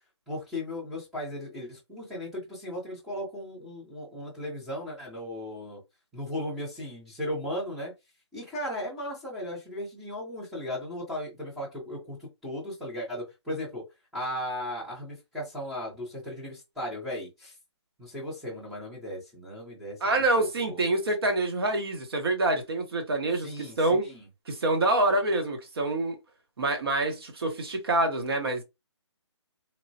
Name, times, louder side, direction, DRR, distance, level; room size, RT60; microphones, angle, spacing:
voice 1, 0.3-5.8 6.1-7.9 8.3-13.8 14.1-17.5 18.0-20.8 23.4-24.3, left 1 dB, ahead, 0.6 m, -36 dB
voice 2, 20.0-24.1 24.5-26.2 26.6-28.6, right 2 dB, 55° right, 0.9 m, -26 dB
3.0 x 2.1 x 2.7 m
hypercardioid pair, 170°, 15 cm